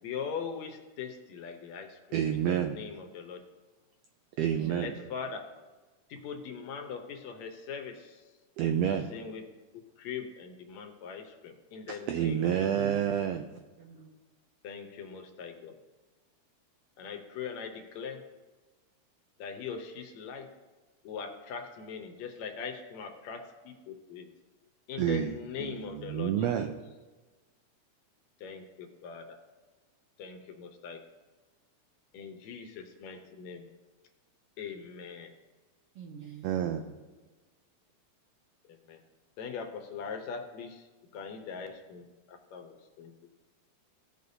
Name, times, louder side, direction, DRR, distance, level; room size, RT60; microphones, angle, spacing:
voice 1, 0.0-2.0 2.3-3.4 4.7-5.4 6.1-8.3 9.1-9.4 10.0-12.8 14.6-15.8 17.0-18.2 19.4-20.5 21.0-24.3 24.9-26.5 28.4-29.2 30.2-31.0 32.1-33.7 34.6-35.3 38.7-39.0 39.4-40.9 41.1-43.1, left 6 dB, 70° left, 4 dB, 2.0 m, -41 dB
voice 2, 2.1-2.8 4.4-4.9 8.6-9.1 11.9-13.5 25.0-26.8 36.4-36.9, right 9 dB, 90° right, 6 dB, 1.4 m, -29 dB
voice 3, 13.8-14.1 35.9-36.8, right 7 dB, 70° right, 1 dB, 1.4 m, -45 dB
16.5 x 6.7 x 2.7 m, 1.3 s
omnidirectional pair, 3.4 m